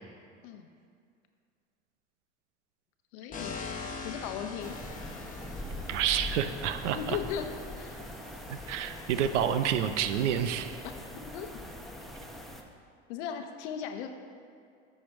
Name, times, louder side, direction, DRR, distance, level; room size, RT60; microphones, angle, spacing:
voice 1, 3.1-4.7 6.9-8.0 10.9-11.5 13.1-14.1, left 8 dB, 70° left, 6 dB, 0.9 m, -38 dB
sound 1, 3.3-10.8, left 4 dB, 25° left, 1.0 m, -45 dB
sound 2, 4.6-12.6, left 1 dB, ahead, 0.7 m, -42 dB
voice 2, 5.9-7.2 8.5-10.8, right 9 dB, 90° right, 10 dB, 0.6 m, -29 dB
9.9 x 6.3 x 3.6 m, 2.3 s
hypercardioid pair, 100°, 35 cm